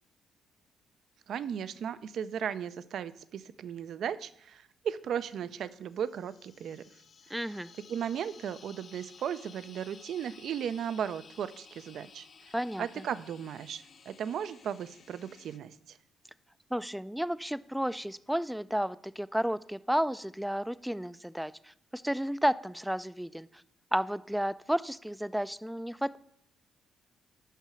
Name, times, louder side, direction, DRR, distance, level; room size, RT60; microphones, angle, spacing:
voice 1, 1.3-6.8 7.9-12.5 12.8-16.0, right 8 dB, 65° right, 14 dB, 0.5 m, -36 dB
sound 1, 5.8-15.6, left 6 dB, 50° left, 0.6 m, -55 dB
voice 2, 7.3-7.7 12.5-13.0 16.7-23.5 23.9-26.2, equal, 5° right, 16 dB, 0.3 m, -32 dB
6.7 x 5.5 x 6.2 m, 0.72 s
cardioid pair, 90°, 0 cm